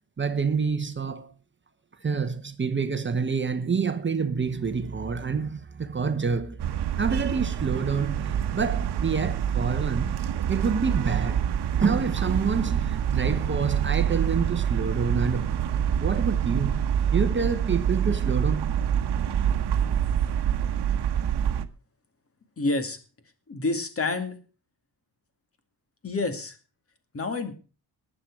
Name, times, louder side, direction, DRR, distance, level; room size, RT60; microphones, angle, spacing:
voice 1, 0.2-1.3 2.0-6.6 7.0-10.1 10.5-11.5 11.8-16.8 17.1-18.7, right 5 dB, 25° right, 1.0 m, -27 dB
sound 1, 6.6-21.7, right 9 dB, 70° right, 1.1 m, -26 dB
voice 2, 22.6-23.0 23.5-24.4 26.0-26.6 27.1-27.5, left 3 dB, 30° left, 2.3 m, -28 dB
19.5 x 7.8 x 4.7 m
wide cardioid pair, 155°, 42 cm